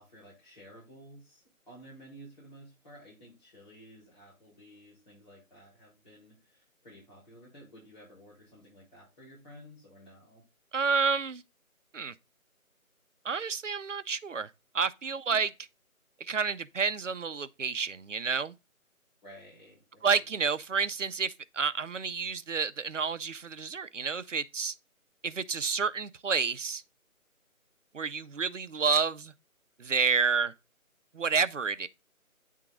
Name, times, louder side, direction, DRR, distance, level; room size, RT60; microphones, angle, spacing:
voice 1, 0.0-10.4 19.2-20.3, equal, 30° left, 4.4 m, -53 dB
voice 2, 10.7-11.4 11.9-12.1 13.2-14.5 14.7-15.5 16.2-18.5 20.0-24.7 25.2-26.8 27.9-29.3 29.8-30.5 31.1-31.9, right 5 dB, 60° right, 0.7 m, -29 dB
9.2 x 3.7 x 3.6 m
figure-of-eight pair, 170°, 42 cm